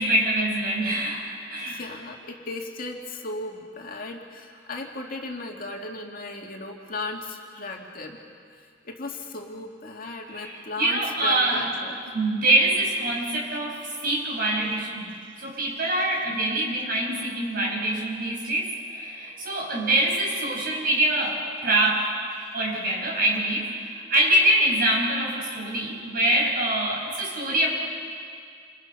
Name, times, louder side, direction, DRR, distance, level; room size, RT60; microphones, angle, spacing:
voice 1, 0.0-1.9 10.3-22.1 22.5-27.7, right 1 dB, 50° right, -2 dB, 6.3 m, -25 dB
voice 2, 1.6-8.2 8.6-12.1 22.4-22.5, left 2 dB, 50° left, 0 dB, 2.4 m, -36 dB
28.5 x 28.0 x 5.7 m, 2.2 s
head